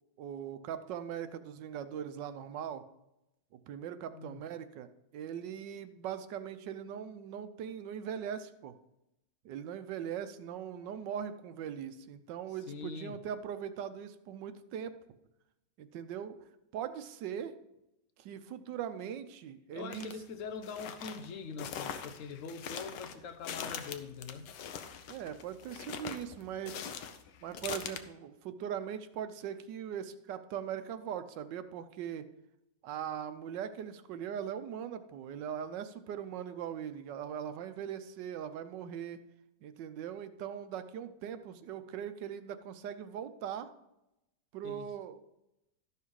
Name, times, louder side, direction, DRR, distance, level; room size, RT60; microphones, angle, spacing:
voice 1, 0.2-2.8 3.7-4.9 5.1-8.7 9.4-15.0 15.8-16.4 16.7-17.6 18.2-20.1 25.1-26.9 27.4-32.3 32.8-39.2 39.6-43.7 44.5-45.2, right 9 dB, 85° right, 1.4 m, -40 dB
voice 2, 4.1-4.4 12.7-13.2 19.7-24.5 44.6-44.9, left 5 dB, 60° left, 0.9 m, -43 dB
sound 1, 19.9-20.1 20.6-28.0, left 8 dB, 80° left, 1.4 m, -42 dB
13.0 x 5.8 x 4.7 m
omnidirectional pair, 1.9 m